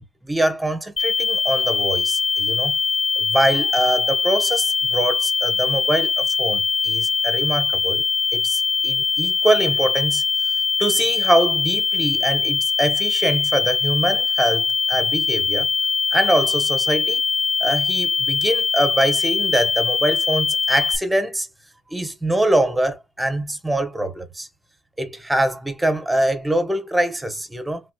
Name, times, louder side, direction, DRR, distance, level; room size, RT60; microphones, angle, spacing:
voice 1, 0.2-2.8 3.2-8.1 8.3-10.2 10.8-15.7 16.1-17.2 17.6-21.5 21.9-24.5 25.0-27.8, right 1 dB, 10° right, 0.9 m, -23 dB
sound 1, 1.0-21.0, left 5 dB, 30° left, 0.4 m, -22 dB
3.4 x 2.9 x 2.3 m
cardioid pair, 90°, 0 cm